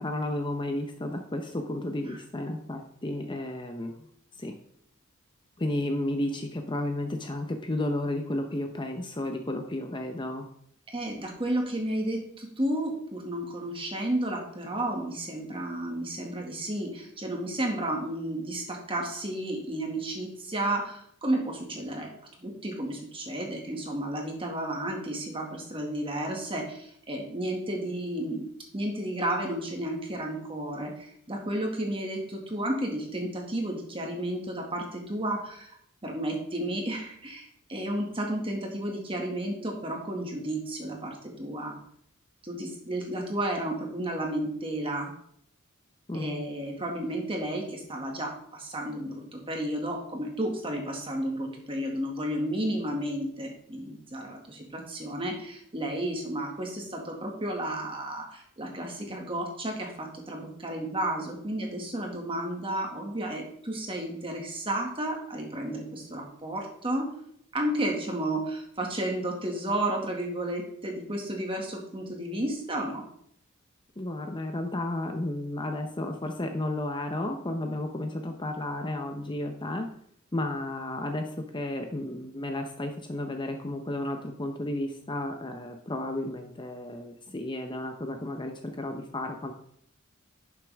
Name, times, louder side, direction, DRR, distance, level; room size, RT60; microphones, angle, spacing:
voice 1, 0.0-3.9 4.4-4.5 5.6-10.5 46.1-46.4 74.0-79.9 80.3-89.5, left 1 dB, 20° left, 5 dB, 0.7 m, -32 dB
voice 2, 10.9-22.1 22.4-28.5 28.7-35.8 36.0-41.8 42.4-45.1 46.1-67.1 67.5-73.0, right 1 dB, 25° right, 1 dB, 2.0 m, -32 dB
11.5 x 6.7 x 3.5 m, 0.68 s
head